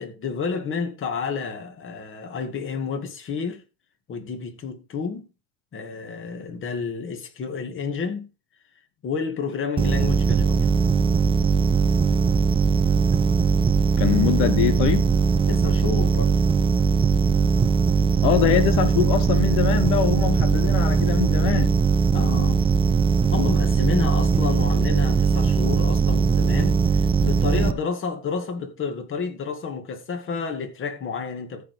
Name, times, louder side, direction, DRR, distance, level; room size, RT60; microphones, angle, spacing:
voice 1, 0.0-3.6 4.1-5.3 5.7-8.3 9.0-10.7 15.5-16.4 22.1-22.6 23.3-31.7, left 5 dB, 35° left, 2.3 m, -30 dB
sound 1, 9.8-27.7, right 5 dB, 15° right, 0.6 m, -20 dB
voice 2, 14.0-15.0 18.2-21.8, left 12 dB, 80° left, 1.2 m, -23 dB
14.0 x 4.9 x 5.0 m
cardioid pair, 135°, 36 cm